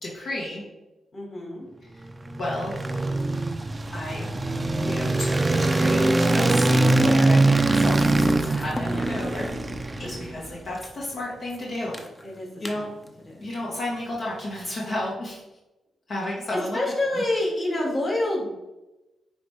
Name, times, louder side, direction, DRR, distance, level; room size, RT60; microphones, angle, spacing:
voice 1, 0.0-0.6 2.4-2.7 3.9-4.3 4.8-9.5 10.0-12.0 12.6-12.9 13.4-15.4 16.1-16.8, left 1 dB, 65° left, -5 dB, 1.5 m, -32 dB
voice 2, 1.1-1.7 6.6-6.8 8.8-9.1 10.0-10.3 12.2-12.9 13.2-13.4 16.3-18.5, left 1 dB, 35° left, -1 dB, 2.2 m, -28 dB
sound 1, 2.1-10.5, right 2 dB, 20° right, 0.5 m, -22 dB
sound 2, 6.9-15.1, left 1 dB, 20° left, 0.8 m, -44 dB
8.9 x 3.4 x 3.3 m, 1.0 s
cardioid pair, 70°, 0 cm